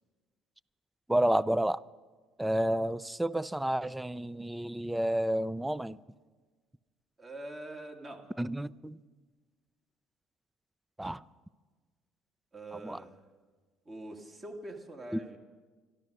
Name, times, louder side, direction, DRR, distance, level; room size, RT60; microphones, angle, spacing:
voice 1, 1.1-1.8 2.4-6.0 8.4-9.0 11.0-11.2 12.8-13.0, right 1 dB, 5° right, 18 dB, 0.4 m, -30 dB
voice 2, 7.2-8.3 12.5-13.2 13.9-15.4, right 1 dB, 30° right, 2 dB, 1.9 m, -44 dB
12.5 x 12.0 x 6.5 m, 1.4 s
hypercardioid pair, 75°, 0 cm